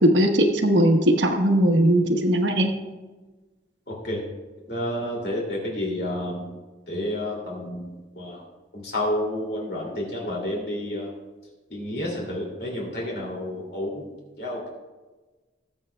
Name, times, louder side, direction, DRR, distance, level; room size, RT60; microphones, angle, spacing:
voice 1, 0.0-2.7, right 1 dB, 85° right, 3 dB, 1.1 m, -19 dB
voice 2, 3.9-4.2 4.7-6.5 6.9-8.4 8.7-11.1 11.7-14.1 14.4-14.7, left 1 dB, 60° left, -3 dB, 2.6 m, -30 dB
19.0 x 7.4 x 2.2 m, 1.2 s
head